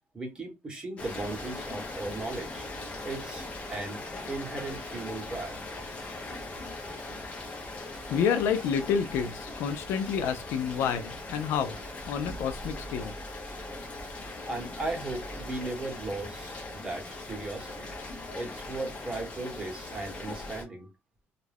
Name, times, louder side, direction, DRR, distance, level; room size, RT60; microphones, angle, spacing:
voice 1, 0.1-2.7 3.0-4.0 4.3-5.6 14.4-17.9 18.4-20.9, right 2 dB, 20° right, 1.0 m, -37 dB
Rain, 1.0-20.6, left 2 dB, 30° left, 0.8 m, -40 dB
voice 2, 8.1-11.8 12.1-13.1, left 7 dB, 65° left, 0.4 m, -29 dB
2.4 x 2.1 x 3.3 m
cardioid pair, 155°, 4 cm